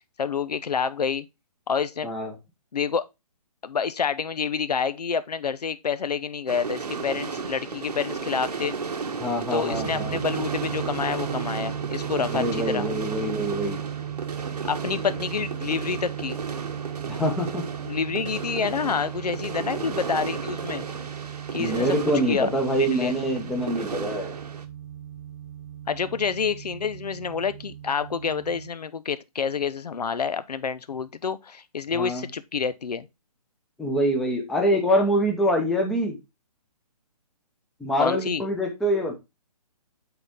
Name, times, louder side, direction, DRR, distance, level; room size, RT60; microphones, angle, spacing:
voice 1, 0.2-1.2 1.7-2.1 2.7-3.0 3.6-8.7 9.5-12.9 14.6-16.4 17.8-20.9 21.5-22.0 22.3-22.5 22.8-23.2 25.9-33.1 38.0-38.4, left 6 dB, 80° left, 0.8 m, -28 dB
voice 2, 2.0-2.4 9.2-10.2 12.2-13.8 17.1-17.6 21.6-24.4 31.9-32.2 33.8-36.2 37.8-39.2, equal, ahead, 0.7 m, -25 dB
sound 1, 6.5-24.6, right 5 dB, 80° right, 1.3 m, -34 dB
sound 2, 9.7-28.7, right 11 dB, 30° right, 0.5 m, -37 dB
7.9 x 4.2 x 3.5 m
hypercardioid pair, 160°, 20 cm